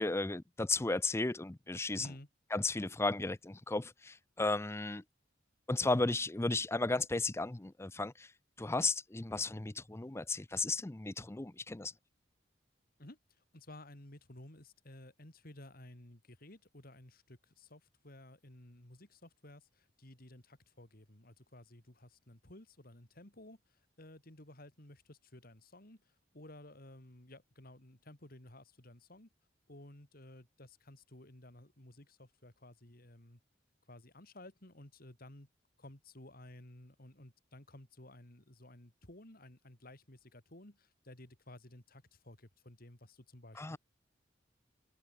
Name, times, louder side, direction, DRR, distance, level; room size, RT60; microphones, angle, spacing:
voice 1, 0.0-2.1 2.5-5.0 5.7-8.3 8.6-11.9 43.6-43.8, left 3 dB, 15° left, 0.5 m, -34 dB
voice 2, 13.0-29.3 29.7-33.4 33.9-35.5 35.8-43.8, left 1 dB, 55° left, 3.6 m, -55 dB
open air
head